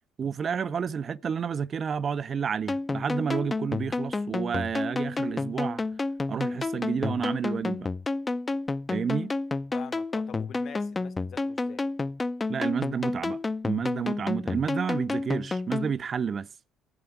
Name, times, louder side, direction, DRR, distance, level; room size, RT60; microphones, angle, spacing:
voice 1, 0.2-5.8 6.3-7.9 8.9-9.3 12.5-16.5, right 6 dB, 45° right, 0.4 m, -30 dB
sound 1, 2.7-15.9, left 3 dB, 25° left, 0.5 m, -30 dB
voice 2, 9.7-11.8, left 8 dB, 55° left, 0.8 m, -45 dB
11.0 x 7.7 x 5.8 m
supercardioid pair, 65°, 0 cm